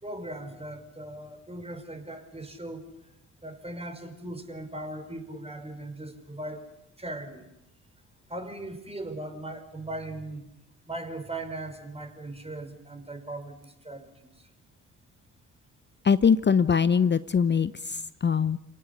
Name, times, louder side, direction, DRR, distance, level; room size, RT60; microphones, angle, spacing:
voice 1, 0.0-2.9 3.4-6.7 7.0-7.5 8.3-10.5 10.9-14.5, right 1 dB, 15° right, 7 dB, 5.4 m, -39 dB
voice 2, 16.0-18.6, left 6 dB, 30° left, 15 dB, 0.8 m, -22 dB
29.0 x 18.5 x 7.4 m, 0.87 s
hypercardioid pair, 45°, 38 cm